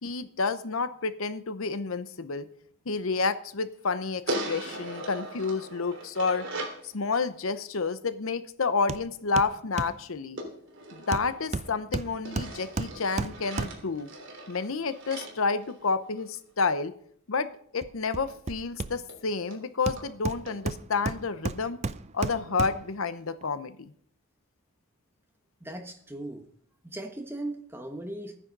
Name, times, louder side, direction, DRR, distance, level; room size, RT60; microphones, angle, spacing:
voice 1, 0.0-2.5 2.9-6.5 6.8-10.4 10.9-14.1 14.5-16.9 17.3-21.8 22.1-23.9, left 4 dB, 65° left, 12 dB, 0.8 m, -30 dB
sound 1, 4.3-6.9 10.4-11.8 12.2-16.4 18.3-18.4 18.7-18.8 19.1-19.2 19.5-19.6 20.0-20.1 20.5-20.6, right 1 dB, 55° right, 3.4 m, -39 dB
Hammer, 8.9-9.1 9.4-10.0 11.1-14.0 17.8-19.3 19.9-23.0 23.4-23.5, right 3 dB, 30° right, 0.4 m, -34 dB
voice 2, 25.6-26.5 26.8-28.4, right 1 dB, 10° right, 5 dB, 1.3 m, -38 dB
14.0 x 9.9 x 5.3 m, 0.62 s
head